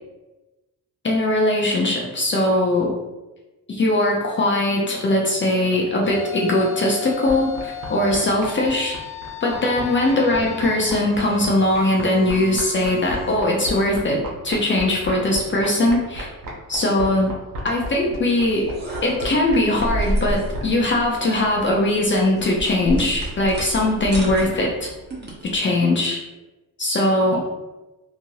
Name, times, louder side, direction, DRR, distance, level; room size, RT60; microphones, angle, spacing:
voice 1, 1.0-2.9 3.7-9.0 9.4-16.3 16.7-17.3 17.6-18.7 19.0-24.9 25.4-26.2 26.8-27.4, left 1 dB, 35° left, -2 dB, 0.6 m, -20 dB
sound 1, 5.6-13.4, left 10 dB, 75° left, 0.6 m, -37 dB
sound 2, 7.3-20.6, equal, 80° right, 0.8 m, -33 dB
sound 3, 18.5-25.6, equal, 30° right, 0.9 m, -31 dB
3.0 x 2.6 x 2.6 m, 1.1 s
cardioid pair, 85°, 34 cm